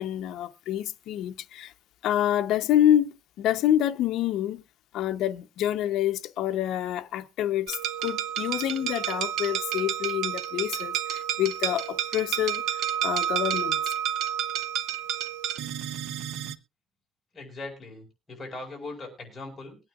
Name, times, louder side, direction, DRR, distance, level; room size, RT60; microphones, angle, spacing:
voice 1, 0.0-1.7 2.0-4.6 4.9-7.8 8.0-13.8, left 11 dB, 75° left, 0.7 m, -27 dB
sound 1, 7.7-16.6, right 10 dB, 80° right, 0.7 m, -30 dB
voice 2, 17.3-19.8, left 2 dB, 20° left, 4.9 m, -40 dB
22.5 x 9.0 x 2.4 m
cardioid pair, 155°, 0 cm